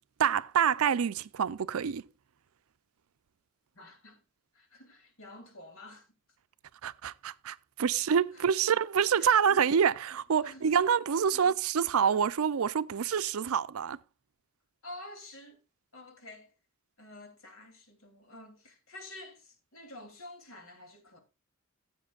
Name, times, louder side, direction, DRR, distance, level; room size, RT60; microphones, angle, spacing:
voice 1, 0.2-2.0 6.8-14.0, right 7 dB, 85° right, 0.5 m, -27 dB
voice 2, 3.7-4.2 4.5-6.1 8.3-8.5 9.2-9.7 10.4-10.8 11.3-11.6 14.8-15.6 15.9-16.5 17.0-21.2, left 2 dB, 75° left, 3.1 m, -49 dB
15.5 x 8.1 x 2.4 m
head